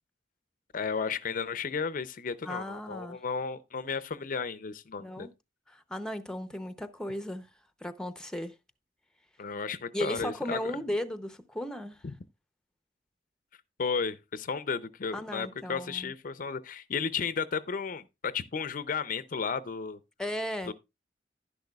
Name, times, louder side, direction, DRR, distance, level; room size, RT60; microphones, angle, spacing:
voice 1, 0.7-5.3 9.4-10.7 12.0-12.1 13.8-20.0 20.7-20.8, left 5 dB, 50° left, 0.5 m, -33 dB
voice 2, 2.4-3.2 5.0-5.3 5.7-7.5 7.8-8.5 9.9-12.0 15.1-16.1 20.2-20.7, left 1 dB, 5° left, 0.6 m, -36 dB
11.5 x 10.5 x 2.3 m
head